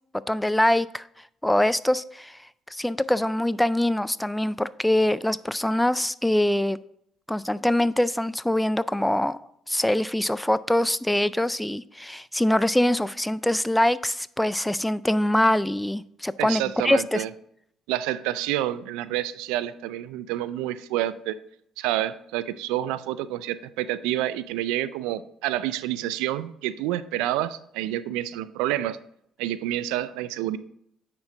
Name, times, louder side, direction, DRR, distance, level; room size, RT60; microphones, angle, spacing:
voice 1, 0.3-1.1 1.4-2.4 2.7-6.8 7.3-9.4 9.7-17.2, left 1 dB, 5° left, 18 dB, 0.4 m, -23 dB
voice 2, 16.4-17.3 17.9-21.4 21.8-29.0 29.4-30.6, right 13 dB, 80° right, 15 dB, 0.3 m, -28 dB
9.3 x 4.5 x 3.8 m, 0.72 s
hypercardioid pair, 55°, 0 cm